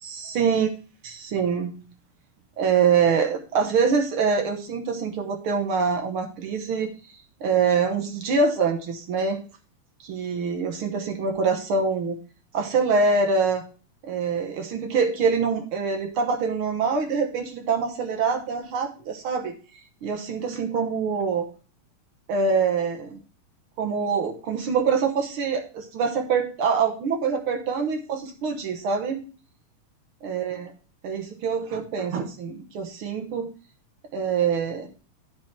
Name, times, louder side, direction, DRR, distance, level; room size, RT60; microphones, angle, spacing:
voice 1, 0.0-0.7 1.0-1.7 2.6-6.9 7.4-9.4 10.0-12.2 12.5-13.6 14.0-19.5 20.0-21.4 22.3-23.2 23.8-29.2 30.2-30.7 31.0-33.5 34.1-34.9, right 5 dB, 65° right, 4 dB, 1.4 m, -24 dB
10.5 x 6.0 x 4.6 m, 0.36 s
omnidirectional pair, 3.8 m